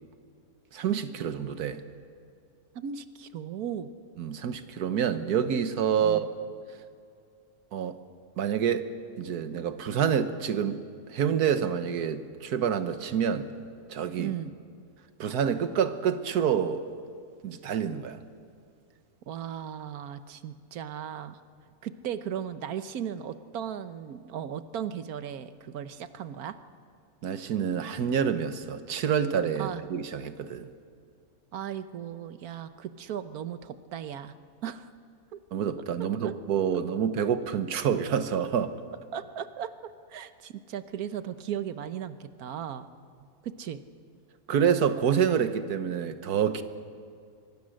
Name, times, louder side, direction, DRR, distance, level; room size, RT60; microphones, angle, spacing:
voice 1, 0.7-1.8 4.2-6.3 7.7-8.0 8.4-8.9 9.2-10.8 11.1-13.5 13.9-14.3 15.2-16.8 17.4-18.2 27.2-30.7 35.5-38.7 44.5-46.6, right 8 dB, 90° right, 10 dB, 1.6 m, -27 dB
voice 2, 2.7-3.9 6.0-6.3 14.2-14.5 19.3-21.4 21.8-26.6 29.6-29.8 31.5-34.3 34.6-34.9 35.3-35.4 36.0-36.3 39.1-42.9 43.4-43.8, right 9 dB, 75° right, 11 dB, 1.4 m, -36 dB
24.5 x 23.5 x 6.5 m, 2.3 s
omnidirectional pair, 1.6 m